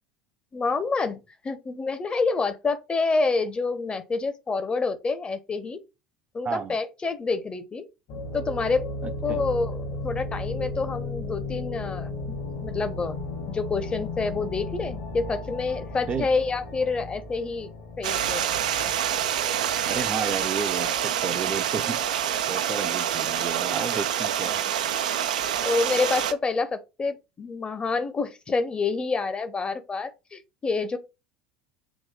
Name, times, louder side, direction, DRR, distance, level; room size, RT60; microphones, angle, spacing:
voice 1, 0.5-1.2 1.4-5.8 6.3-7.9 8.3-8.9 9.2-12.1 12.6-17.7 18.0-18.5 24.4-24.6 25.6-31.0, left 4 dB, 25° left, 0.8 m, -28 dB
voice 2, 6.4-6.8 9.0-9.4 16.1-16.3 19.8-22.0 22.5-24.6, right 6 dB, 30° right, 0.6 m, -32 dB
sound 1, 8.1-20.8, left 2 dB, 60° left, 1.4 m, -35 dB
Stream, 18.0-26.3, right 10 dB, 70° right, 0.4 m, -26 dB
7.2 x 3.0 x 2.2 m
figure-of-eight pair, 70°, 4 cm